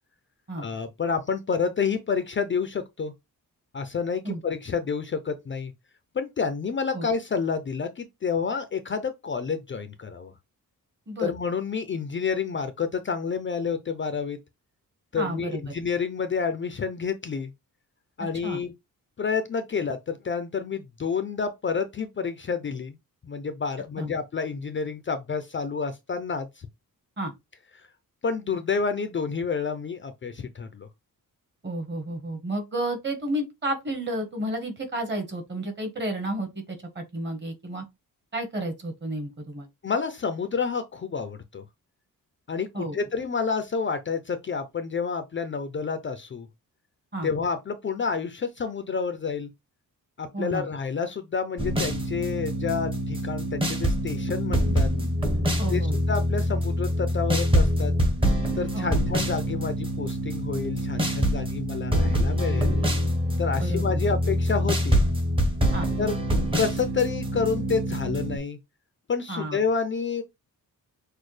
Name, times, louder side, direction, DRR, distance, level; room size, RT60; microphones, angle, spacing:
voice 1, 0.6-3.1 3.7-5.7 6.1-10.3 11.2-14.4 15.1-17.5 18.2-18.7 19.2-23.0 23.2-26.7 27.8-27.9 28.2-30.9 39.8-41.6 42.5-46.5 47.2-49.5 50.2-54.9 55.7-55.8 56.1-57.9 58.5-62.8 63.4-65.0 66.0-66.2 66.5-68.6 69.1-70.2, left 5 dB, 35° left, 0.4 m, -29 dB
voice 2, 15.2-15.6 18.2-18.6 24.0-24.1 27.2-27.3 31.6-37.8 38.3-39.7 42.7-43.0 47.1-47.3 50.3-50.7 55.6-56.0 58.7-59.0 63.6-64.0 65.7-65.9 69.3-69.6, right 1 dB, 30° right, 1.2 m, -31 dB
sound 1, 51.6-68.4, equal, 15° right, 0.8 m, -25 dB
6.2 x 2.1 x 3.2 m
wide cardioid pair, 175°, 35 cm